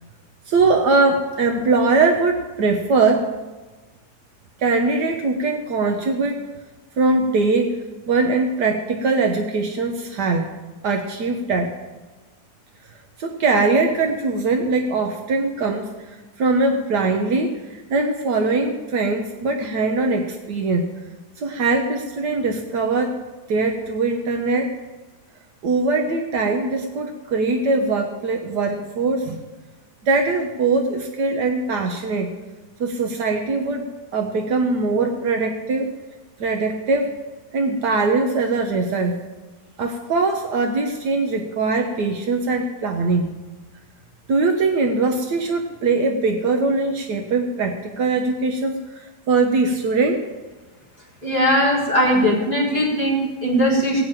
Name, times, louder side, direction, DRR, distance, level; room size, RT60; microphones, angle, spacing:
voice 1, 0.5-3.3 4.6-6.5 7.0-7.8 8.1-10.5 10.8-11.7 13.2-20.9 21.4-23.2 23.5-24.7 25.6-29.4 30.0-32.3 32.8-35.9 36.4-37.2 37.5-39.2 39.8-43.3 44.3-50.2, right 3 dB, 80° right, 3 dB, 1.6 m, -21 dB
voice 2, 51.2-54.0, equal, 30° right, -5 dB, 4.0 m, -19 dB
17.0 x 6.1 x 8.9 m, 1.2 s
omnidirectional pair, 1.8 m